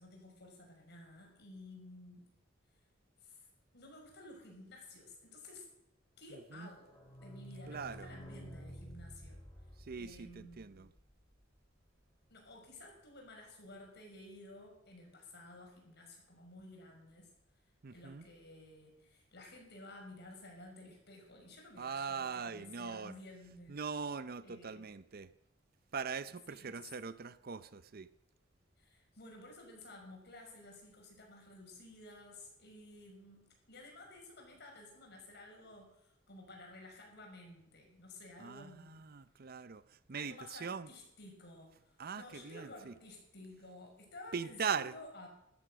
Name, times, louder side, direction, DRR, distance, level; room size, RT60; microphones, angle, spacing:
voice 1, 0.0-2.3 3.2-3.5 3.7-5.7 6.2-9.4 10.0-10.8 12.3-17.3 17.9-23.8 24.4-24.8 26.3-26.9 28.8-39.0 40.1-45.3, left 2 dB, 60° left, 5.8 m, -54 dB
sound 1, 6.6-12.1 12.4-12.5 12.7-12.8 13.1-13.2, equal, 20° left, 3.7 m, -52 dB
voice 2, 7.7-8.1 9.9-10.9 17.8-18.2 21.8-23.1 23.7-25.3 25.9-28.1 38.4-39.8 40.1-40.9 42.0-42.9 44.3-44.9, right 6 dB, 50° right, 0.6 m, -41 dB
14.0 x 13.0 x 6.3 m
head